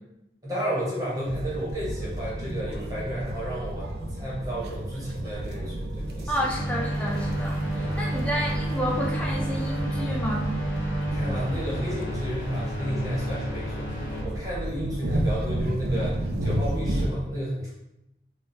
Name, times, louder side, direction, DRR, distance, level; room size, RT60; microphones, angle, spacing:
voice 1, 0.4-6.4 7.8-8.1 11.1-17.7, equal, 20° right, -6 dB, 0.8 m, -32 dB
sound 1, 1.2-17.1, right 1 dB, 60° right, 0.3 m, -32 dB
voice 2, 6.3-10.5, equal, 5° left, -3 dB, 0.5 m, -30 dB
sound 2, 6.5-14.2, right 1 dB, 50° left, 1.2 m, -30 dB
3.5 x 2.0 x 2.6 m, 0.87 s
head